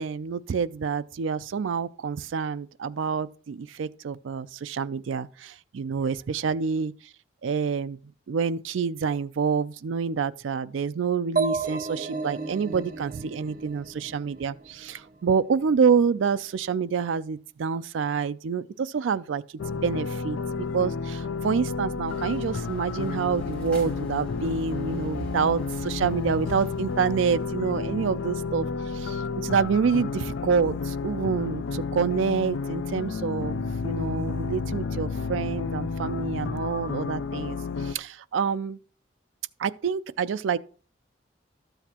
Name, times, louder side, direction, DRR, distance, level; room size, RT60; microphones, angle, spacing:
voice 1, 0.0-6.9 7.4-8.0 8.3-19.4 19.8-20.4 20.7-28.7 28.9-38.8 39.6-40.6, right 6 dB, 80° right, 0.4 m, -27 dB
sound 1, 11.4-15.0, right 4 dB, 45° right, 0.9 m, -32 dB
sound 2, 19.6-38.0, left 4 dB, 85° left, 0.4 m, -31 dB
sound 3, 22.1-27.4, right 1 dB, 5° left, 2.5 m, -43 dB
12.5 x 7.9 x 2.9 m
head